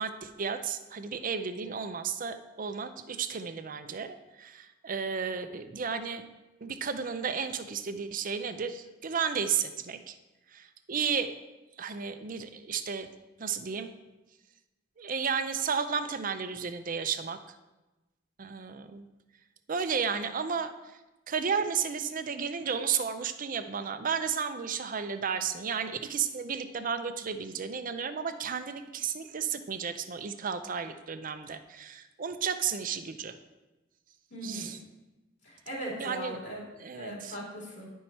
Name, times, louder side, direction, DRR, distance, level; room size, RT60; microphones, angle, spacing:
voice 1, 0.0-6.2 6.6-10.2 10.5-11.3 11.8-13.1 13.4-13.9 15.0-17.4 18.4-19.1 19.7-20.7 21.3-33.4 34.4-34.8 36.0-36.4 36.8-37.4, right 6 dB, 45° right, 9 dB, 0.6 m, -33 dB
voice 2, 34.3-34.8 35.4-36.6 37.0-37.9, right 1 dB, 65° left, -4 dB, 3.2 m, -39 dB
10.5 x 5.5 x 4.2 m, 1.1 s
head